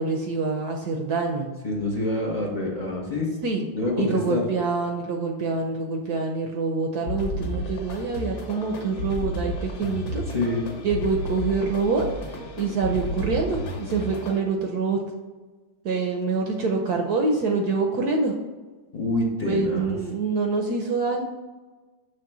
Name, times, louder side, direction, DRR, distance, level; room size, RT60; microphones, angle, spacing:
voice 1, 0.0-1.5 3.4-3.7 4.0-10.2 10.8-15.0 15.8-18.3 19.4-21.2, right 4 dB, 65° right, 2 dB, 1.0 m, -26 dB
voice 2, 1.6-3.3 3.7-4.4 10.3-10.6 18.9-19.9, left 2 dB, 75° left, -3 dB, 0.3 m, -26 dB
sound 1, 7.1-14.4, left 1 dB, 60° left, 1.4 m, -32 dB
6.4 x 3.2 x 5.9 m, 1.3 s
omnidirectional pair, 2.3 m